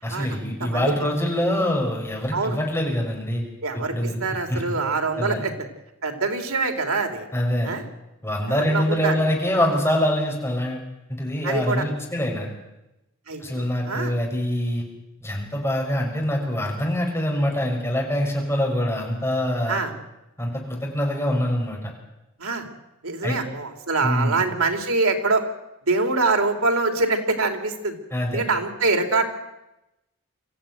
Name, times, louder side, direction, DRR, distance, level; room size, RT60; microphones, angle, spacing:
voice 1, 0.0-3.4 3.7-4.6 5.2-5.4 7.3-7.7 8.2-12.5 13.4-14.8 15.2-19.8 20.4-21.9 23.2-23.4 24.0-24.4 28.1-28.4, left 1 dB, 10° left, 0 dB, 6.0 m, -25 dB
voice 2, 0.6-0.9 2.3-2.6 3.6-5.5 6.0-7.3 7.6-7.8 8.5-9.1 11.4-11.8 13.3-14.1 19.7-19.9 22.4-22.7 23.0-25.4 25.9-27.9 28.3-29.3, right 3 dB, 90° right, 5 dB, 3.3 m, -24 dB
25.0 x 14.5 x 9.3 m, 0.94 s
head